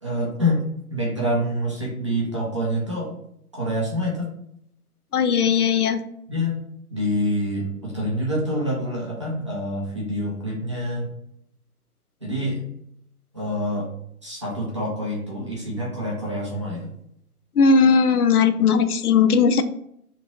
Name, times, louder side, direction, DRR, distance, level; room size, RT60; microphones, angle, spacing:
voice 1, 0.0-3.2 3.5-4.3 6.3-6.6 6.9-11.1 12.2-12.6 13.3-13.9 14.2-16.9, equal, 20° right, -5 dB, 0.5 m, -26 dB
voice 2, 5.1-6.0 17.6-19.6, left 5 dB, 75° left, 10 dB, 0.5 m, -18 dB
3.0 x 2.5 x 4.3 m, 0.72 s
figure-of-eight pair, 140°, 45 cm